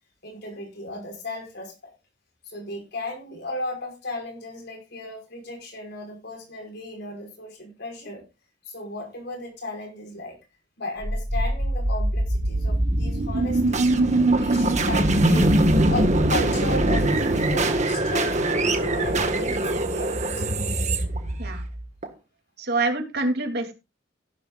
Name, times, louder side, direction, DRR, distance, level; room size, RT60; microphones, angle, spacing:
voice 1, 0.2-1.9 2.4-8.3 8.6-10.4 10.8-13.9 14.3-15.5 15.9-20.6, left 2 dB, 60° left, 4 dB, 5.5 m, -35 dB
sound 1, 11.0-22.1, right 1 dB, 40° right, 1.7 m, -22 dB
voice 2, 22.6-23.7, right 2 dB, 60° right, 4 dB, 2.9 m, -26 dB
15.0 x 12.0 x 2.5 m, 0.26 s
head